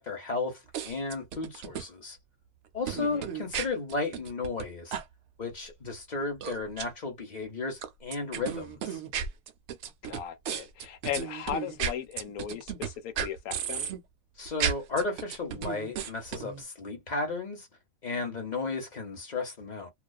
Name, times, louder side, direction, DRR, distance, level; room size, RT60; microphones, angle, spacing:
voice 1, 0.0-2.2 2.7-5.0 5.4-9.0 14.4-17.7 18.0-19.9, left 3 dB, 40° left, 0.8 m, -34 dB
sound 1, 0.7-1.8 2.9-4.6 4.9-5.0 6.4-6.8 7.8-12.9 13.2-14.0 14.5-16.6, right 8 dB, 65° right, 0.7 m, -34 dB
voice 2, 3.0-3.3 10.0-13.9, left 9 dB, 85° left, 1.1 m, -37 dB
2.4 x 2.3 x 2.3 m
omnidirectional pair, 1.5 m